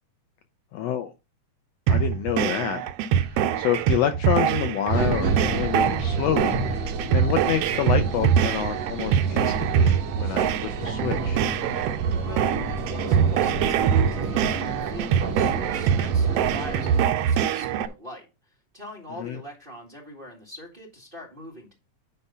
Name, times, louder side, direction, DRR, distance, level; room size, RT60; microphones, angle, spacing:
voice 1, 0.7-1.1 1.9-2.8 3.2-10.5 10.8-11.4 19.2-19.4, left 10 dB, 75° left, 7 dB, 1.6 m, -28 dB
sound 1, 1.9-17.9, right 8 dB, 80° right, 1.4 m, -24 dB
sound 2, 4.9-17.1, right 4 dB, 65° right, 2.6 m, -30 dB
voice 2, 12.2-21.7, equal, 20° right, -1 dB, 1.5 m, -42 dB
9.9 x 3.5 x 5.4 m, 0.27 s
omnidirectional pair, 3.5 m